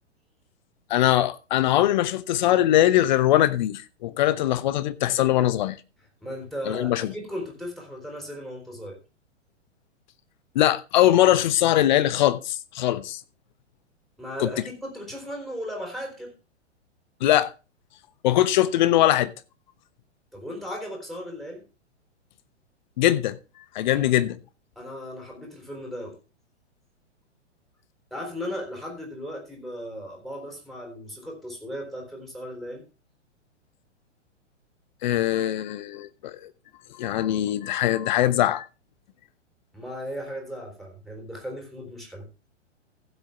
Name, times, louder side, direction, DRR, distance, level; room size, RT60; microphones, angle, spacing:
voice 1, 0.9-5.8 6.7-7.1 10.5-13.2 14.4-14.5 17.2-17.5 18.2-19.3 23.0-23.4 23.7-24.4 35.0-36.5 37.0-38.7, left 13 dB, 40° left, 0.9 m, -21 dB
voice 2, 6.2-9.0 14.2-16.3 20.3-21.6 24.8-26.1 28.1-32.8 39.7-42.3, equal, ahead, 3.8 m, -36 dB
15.5 x 7.8 x 3.5 m
figure-of-eight pair, 110°, 36 cm